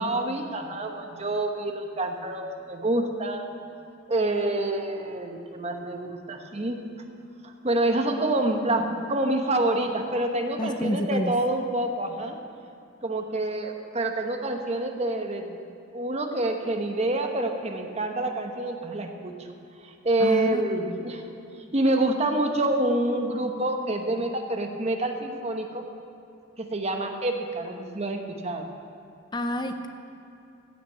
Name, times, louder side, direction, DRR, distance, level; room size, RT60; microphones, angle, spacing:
voice 1, 0.0-3.5 4.1-6.8 7.6-12.4 13.0-15.6 15.9-19.3 19.8-21.2 21.7-25.8 26.6-28.7, right 1 dB, 35° right, 4 dB, 1.0 m, -27 dB
voice 2, 10.6-11.3 20.2-21.0 29.3-29.9, left 1 dB, 25° left, 7 dB, 0.5 m, -29 dB
15.0 x 5.9 x 8.5 m, 2.7 s
head